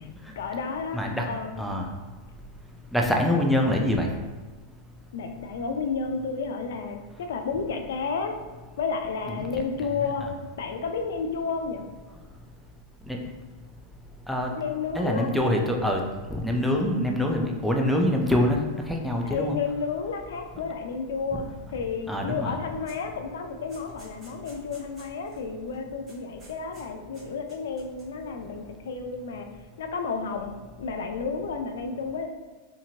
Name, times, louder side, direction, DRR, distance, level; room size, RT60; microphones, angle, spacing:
voice 1, 0.4-1.6 5.1-8.3 8.8-10.3 10.6-11.9 14.6-15.3 19.2-21.4 21.7-29.5 29.8-32.3, left 5 dB, 80° left, 5 dB, 0.4 m, -31 dB
voice 2, 0.9-1.3 1.6-1.9 2.9-4.1 9.3-9.5 10.2-10.3 13.1-13.2 14.3-14.5 14.9-16.0 16.3-18.6 18.9-19.6 21.3-21.5 22.1-22.6, left 1 dB, ahead, 0 dB, 0.4 m, -25 dB
sound 1, 22.9-23.1 23.4-25.4 25.7-25.8 26.1-26.8 27.1-28.2, right 1 dB, 15° right, 1.3 m, -53 dB
2.8 x 2.5 x 2.7 m, 1.3 s
supercardioid pair, 135°, 0 cm